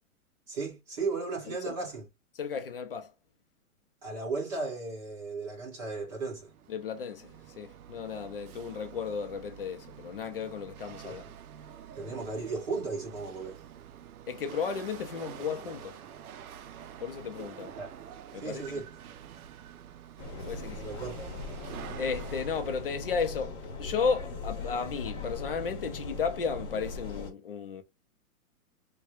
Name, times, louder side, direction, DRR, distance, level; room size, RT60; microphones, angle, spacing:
voice 1, 0.5-2.1 4.0-6.5 11.0-11.2 11.9-13.6 17.8-17.9 18.4-18.9 20.8-21.2, right 4 dB, 30° right, 1.7 m, -35 dB
voice 2, 2.4-3.1 6.7-11.2 14.3-16.0 17.0-17.7 18.3-18.8 20.3-20.8 22.0-27.8, left 6 dB, 40° left, 0.5 m, -34 dB
Chatter / Hiss / Rattle, 6.0-22.9, right 9 dB, 75° right, 0.6 m, -47 dB
sound 1, 20.2-27.3, left 3 dB, 25° left, 0.9 m, -39 dB
3.5 x 2.2 x 2.9 m
hypercardioid pair, 175°, 44 cm